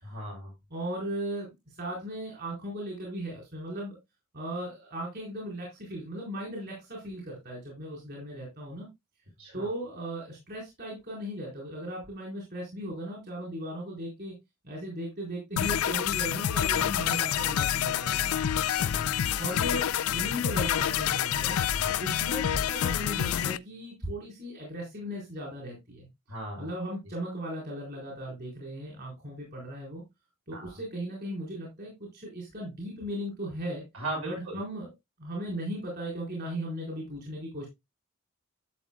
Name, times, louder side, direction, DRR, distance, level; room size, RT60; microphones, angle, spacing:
voice 1, 0.0-0.5 9.4-9.7 16.7-16.9 18.6-19.1 21.7-22.0 26.3-26.7 30.5-30.8 33.9-34.6, right 1 dB, 80° right, -1 dB, 6.7 m, -38 dB
voice 2, 0.7-4.0 4.3-8.9 9.5-14.3 14.6-18.4 19.3-21.6 22.0-26.1 26.6-30.0 30.5-33.8 34.2-34.9 35.2-37.7, equal, 50° right, -2 dB, 4.1 m, -37 dB
sound 1, 15.6-23.6, left 10 dB, 75° left, 0.4 m, -28 dB
12.0 x 7.2 x 2.2 m, 0.20 s
head